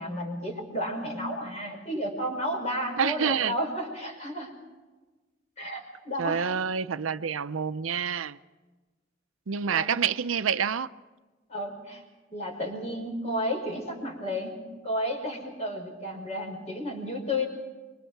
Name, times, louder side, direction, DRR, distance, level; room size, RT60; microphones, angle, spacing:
voice 1, 0.0-4.5 5.6-6.4 9.7-9.9 11.5-12.0 12.3-14.5 14.8-17.5, left 1 dB, 35° left, 5.2 m, -32 dB
voice 2, 3.0-3.5 6.2-8.4 9.5-10.9, right 7 dB, 90° right, 0.6 m, -27 dB
26.5 x 24.0 x 4.6 m
head